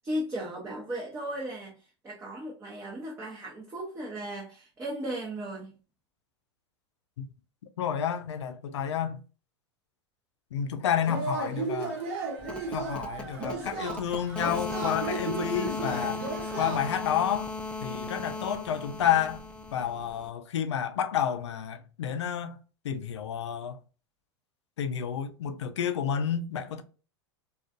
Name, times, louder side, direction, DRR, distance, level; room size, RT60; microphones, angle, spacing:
voice 1, 0.0-5.7, right 1 dB, 20° right, 0.8 m, -36 dB
voice 2, 7.8-9.2 10.5-11.9 12.5-16.3 16.6-17.5 17.8-19.4 19.7-22.6 22.8-23.8 24.8-26.8, left 9 dB, 80° left, 0.4 m, -30 dB
Yell / Cheering, 11.0-17.2, right 3 dB, 55° right, 1.0 m, -35 dB
sound 1, 12.4-20.3, left 3 dB, 5° left, 0.3 m, -37 dB
2.4 x 2.3 x 2.3 m
hypercardioid pair, 95°, 15 cm